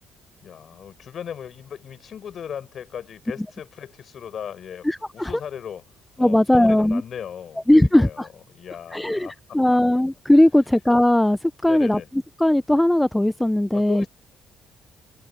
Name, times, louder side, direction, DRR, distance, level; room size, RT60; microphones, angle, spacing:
voice 1, 0.4-4.9 5.1-5.8 6.2-8.3 8.5-9.8 11.6-12.1 13.7-14.1, left 8 dB, 45° left, 4.6 m, -37 dB
voice 2, 4.8-5.3 6.2-7.0 7.7-8.3 8.9-12.0 12.4-14.1, left 1 dB, 5° left, 0.4 m, -18 dB
cardioid pair, 165°, 0 cm